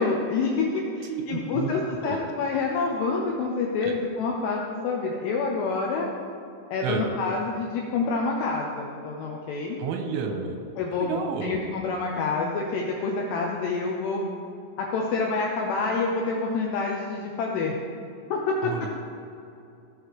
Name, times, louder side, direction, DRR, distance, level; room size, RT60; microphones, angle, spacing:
voice 1, 0.0-6.1 6.7-9.8 10.8-14.2 14.8-17.7 18.3-18.7, left 4 dB, 80° left, -1 dB, 2.4 m, -27 dB
voice 2, 1.1-1.7 2.0-2.2 3.8-3.9 6.8-7.1 9.8-10.6 11.0-11.6 18.6-18.9, right 6 dB, 85° right, 4 dB, 3.1 m, -30 dB
16.0 x 6.2 x 3.3 m, 2.6 s
omnidirectional pair, 5.7 m